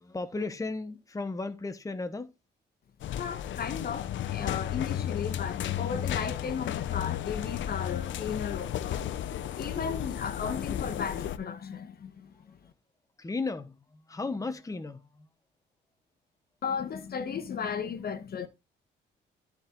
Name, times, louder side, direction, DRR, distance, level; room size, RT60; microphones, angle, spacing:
voice 1, 0.0-2.3 13.2-15.3, left 3 dB, 15° left, 1.1 m, -35 dB
sound 1, 3.0-11.4, left 11 dB, 70° left, 0.7 m, -34 dB
voice 2, 3.1-9.1 9.6-12.7 16.6-18.5, left 6 dB, 50° left, 1.3 m, -35 dB
13.5 x 4.5 x 3.9 m
cardioid pair, 90°, 20 cm